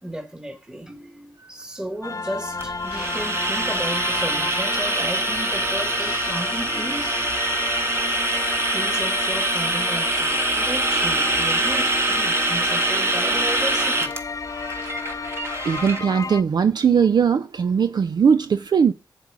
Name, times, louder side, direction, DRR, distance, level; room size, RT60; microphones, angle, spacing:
voice 1, 0.0-7.3 8.7-14.2, right 1 dB, 10° right, 1.4 m, -34 dB
sound 1, 2.0-16.4, left 4 dB, 40° left, 0.5 m, -32 dB
sound 2, 2.6-16.0, right 2 dB, 30° right, 1.2 m, -24 dB
voice 2, 15.6-18.9, right 6 dB, 55° right, 0.4 m, -19 dB
7.6 x 7.4 x 4.8 m
cardioid pair, 50°, 8 cm